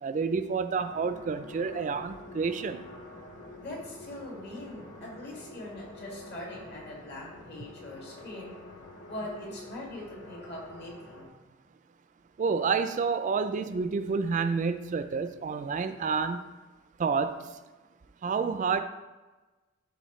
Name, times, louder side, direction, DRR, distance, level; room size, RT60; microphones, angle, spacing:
voice 1, 0.0-2.8 12.4-16.4 17.0-17.4 18.2-18.8, right 5 dB, 40° right, 10 dB, 0.3 m, -29 dB
sound 1, 0.7-11.3, left 2 dB, 75° left, 1.4 m, -47 dB
voice 2, 3.6-8.6 9.1-11.3, left 1 dB, 55° left, -3 dB, 2.2 m, -42 dB
12.0 x 4.2 x 3.1 m, 1.2 s
head